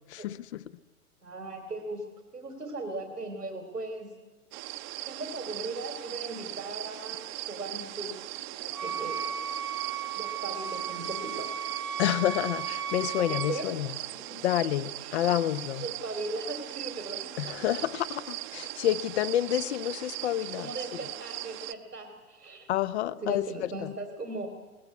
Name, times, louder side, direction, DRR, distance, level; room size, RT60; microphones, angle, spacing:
voice 1, 1.2-2.0 2.3-4.1 5.1-7.2 7.5-8.2 8.5-9.2 10.1-11.6 13.2-13.7 14.3-14.4 15.0-15.4 15.8-17.6 20.6-22.7 23.1-24.5, right 2 dB, 90° right, 5 dB, 3.0 m, -38 dB
sound 1, 4.5-21.7, right 17 dB, 30° right, 0.9 m, -39 dB
Wind instrument woodwind instrument, 8.7-13.7, right 8 dB, 70° right, 1.2 m, -35 dB
voice 2, 12.0-13.9 14.4-15.8 17.4-20.7 22.7-23.4, left 12 dB, 45° left, 16 dB, 0.8 m, -28 dB
21.5 x 19.0 x 8.3 m, 1.3 s
figure-of-eight pair, 115°, 45 cm